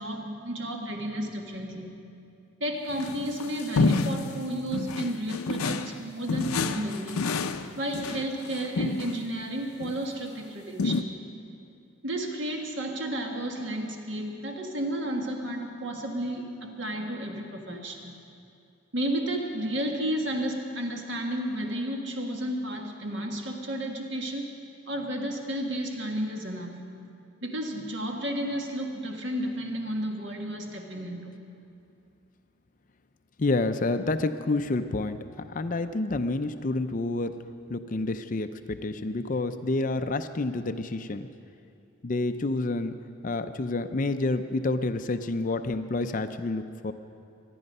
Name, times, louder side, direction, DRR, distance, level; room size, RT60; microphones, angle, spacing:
voice 1, 0.0-2.0 2.6-7.3 7.7-11.1 12.0-18.1 18.9-24.5 24.9-26.8 27.4-31.4, right 1 dB, 55° right, 2 dB, 1.6 m, -32 dB
sound 1, 2.9-4.3 4.7-6.0 6.3-9.2 9.8-10.0 10.8-11.0, left 4 dB, 90° left, 0.6 m, -28 dB
voice 2, 33.4-35.2 35.5-37.4 37.7-41.3 42.0-46.9, left 2 dB, 40° left, 9 dB, 0.5 m, -29 dB
24.5 x 10.0 x 5.4 m, 2.6 s
head